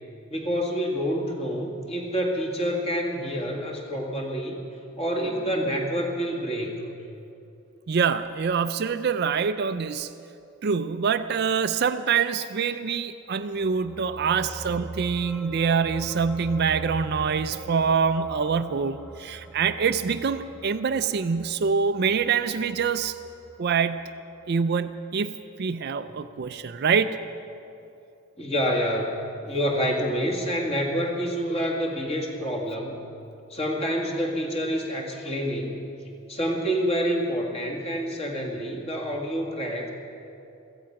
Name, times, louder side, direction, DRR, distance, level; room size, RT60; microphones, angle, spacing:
voice 1, 0.3-4.6 5.0-6.9 14.1-14.3 28.4-29.2 29.4-33.0 33.5-35.8 36.3-39.9, equal, 25° left, 0 dB, 1.9 m, -27 dB
voice 2, 7.9-10.1 10.6-23.2 23.6-24.0 24.5-25.3 25.6-27.2, right 6 dB, 45° right, 11 dB, 0.4 m, -25 dB
sound 1, 13.4-24.2 24.5-24.7, right 2 dB, ahead, 0.7 m, -42 dB
16.0 x 14.5 x 5.9 m, 2.8 s
head